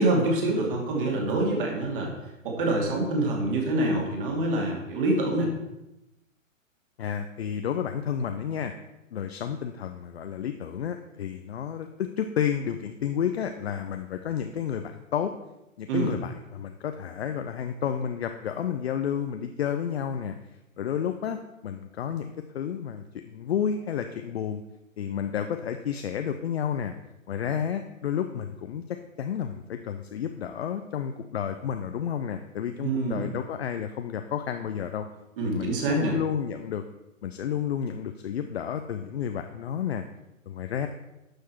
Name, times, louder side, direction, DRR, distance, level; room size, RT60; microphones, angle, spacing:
voice 1, 0.0-2.1 2.4-5.5 15.9-16.2 32.8-33.3 35.4-36.2, right 2 dB, 40° right, 0 dB, 2.9 m, -26 dB
voice 2, 7.0-8.7 9.1-15.3 15.8-20.3 20.8-22.3 22.5-24.6 25.0-26.9 27.3-35.0 35.4-36.8 37.2-40.0 40.5-40.9, left 8 dB, 50° left, 7 dB, 0.7 m, -31 dB
11.5 x 6.5 x 4.6 m, 0.95 s
figure-of-eight pair, 125°, 41 cm